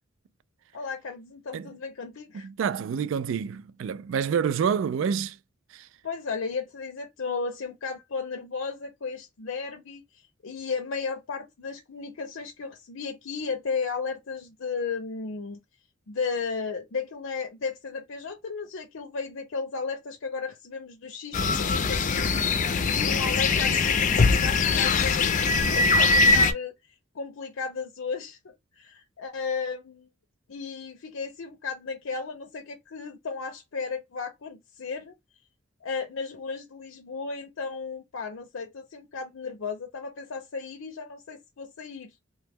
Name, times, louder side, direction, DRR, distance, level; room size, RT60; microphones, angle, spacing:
voice 1, 0.7-2.5 6.0-15.6 16.1-22.3 22.7-26.7 27.1-30.1 30.5-35.1 35.8-42.1, left 5 dB, 85° left, 0.6 m, -34 dB
voice 2, 2.4-5.4 5.7-5.9, right 7 dB, 75° right, 0.3 m, -28 dB
sound 1, 21.3-26.5, left 4 dB, 40° left, 0.4 m, -22 dB
3.0 x 2.2 x 3.3 m
head